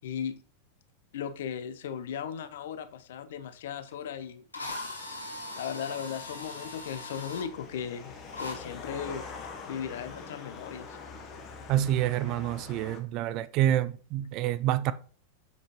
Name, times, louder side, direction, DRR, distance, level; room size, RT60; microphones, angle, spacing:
voice 1, 0.0-0.3 1.1-9.3 9.7-11.0, left 8 dB, 55° left, 0.6 m, -37 dB
Drill, 3.9-4.0 4.5-7.5 8.3-8.6, left 2 dB, 80° left, 2.3 m, -39 dB
sound 1, 4.8-13.0, left 5 dB, 30° left, 1.1 m, -45 dB
voice 2, 11.7-14.9, right 12 dB, 40° right, 0.3 m, -27 dB
7.0 x 6.2 x 3.0 m
figure-of-eight pair, 90°, 0 cm